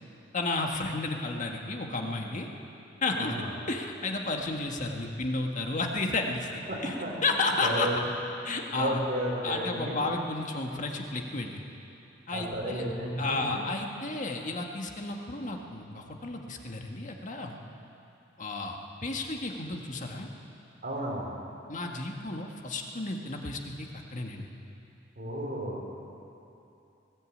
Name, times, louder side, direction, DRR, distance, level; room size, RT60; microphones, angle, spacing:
voice 1, 0.3-2.5 3.0-3.4 3.7-7.0 7.2-7.9 8.4-9.0 9.4-11.6 12.3-12.8 13.2-17.6 18.4-20.3 21.7-24.5, left 3 dB, 40° left, 2 dB, 1.7 m, -32 dB
voice 2, 3.2-3.5 6.7-8.0 8.7-10.1 12.3-13.7 20.8-21.3 25.2-25.8, right 1 dB, 50° right, -3 dB, 4.9 m, -33 dB
19.5 x 16.5 x 8.7 m, 2.9 s
head